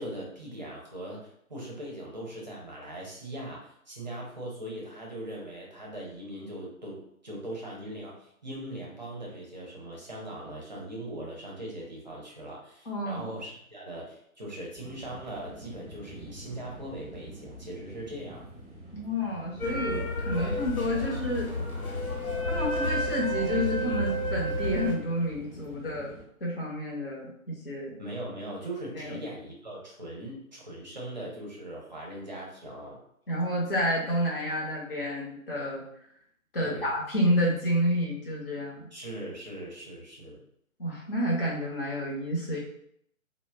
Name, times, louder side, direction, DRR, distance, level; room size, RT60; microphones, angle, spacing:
voice 1, 0.0-18.5 20.3-20.7 28.0-33.0 36.6-36.9 38.9-40.4, right 1 dB, 35° right, -3 dB, 0.6 m, -40 dB
voice 2, 12.9-13.2 18.9-21.5 22.5-26.1 26.4-27.9 28.9-29.1 33.3-35.8 36.5-38.9 40.8-42.6, equal, 40° left, -3 dB, 0.7 m, -29 dB
sound 1, 14.7-26.2, equal, 5° right, 0.8 m, -47 dB
sound 2, 19.6-24.9, equal, 90° left, 1.0 m, -30 dB
2.3 x 2.0 x 3.3 m, 0.71 s
figure-of-eight pair, 145°, 42 cm